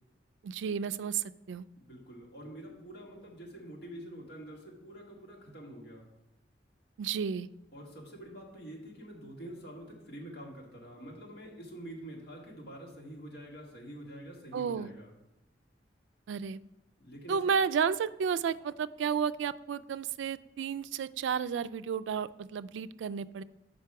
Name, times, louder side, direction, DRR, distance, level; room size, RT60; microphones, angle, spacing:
voice 1, 0.4-1.7 7.0-7.5 14.5-14.9 16.3-16.6 17.3-23.4, right 7 dB, 85° right, 15 dB, 0.3 m, -32 dB
voice 2, 1.8-6.0 7.7-15.1 17.0-17.4, right 1 dB, 70° left, -2 dB, 1.9 m, -46 dB
6.8 x 5.2 x 4.7 m, 0.96 s
head